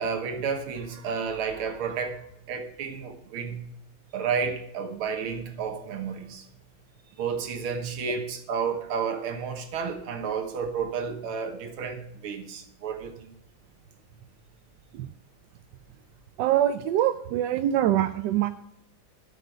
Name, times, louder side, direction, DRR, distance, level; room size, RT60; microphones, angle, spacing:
voice 1, 0.0-2.2 2.5-3.6 4.1-6.4 7.2-13.3, right 6 dB, 90° right, 2.1 m, -31 dB
voice 2, 16.4-18.5, right 12 dB, 75° right, 1.1 m, -24 dB
8.4 x 6.9 x 7.9 m
omnidirectional pair, 2.3 m